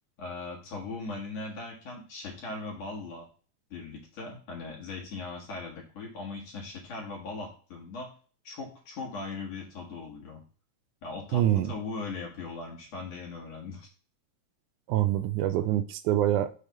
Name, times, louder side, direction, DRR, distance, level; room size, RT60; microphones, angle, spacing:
voice 1, 0.2-3.3 3.7-8.1 8.4-10.4 11.0-13.9, left 3 dB, 60° left, -2 dB, 2.4 m, -39 dB
voice 2, 11.3-11.7 14.9-16.5, right 12 dB, 80° right, 12 dB, 1.9 m, -25 dB
6.3 x 3.5 x 5.6 m, 0.39 s
omnidirectional pair, 3.6 m